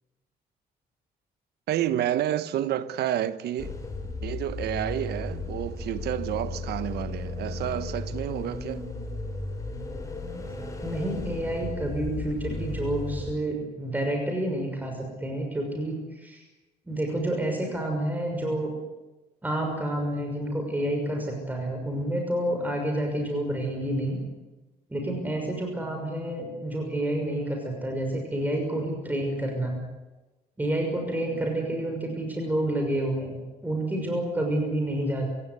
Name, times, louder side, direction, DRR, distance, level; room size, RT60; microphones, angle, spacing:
voice 1, 1.7-3.8 4.2-8.8, right 11 dB, 80° right, 1.2 m, -29 dB
sound 1, 3.6-13.3, left 2 dB, 20° left, 4.8 m, -35 dB
voice 2, 10.8-16.4 16.9-18.7 19.4-24.2 24.9-29.8 30.6-35.3, right 1 dB, 10° right, 6.2 m, -29 dB
28.0 x 17.0 x 9.8 m
cardioid pair, 125°, 17 cm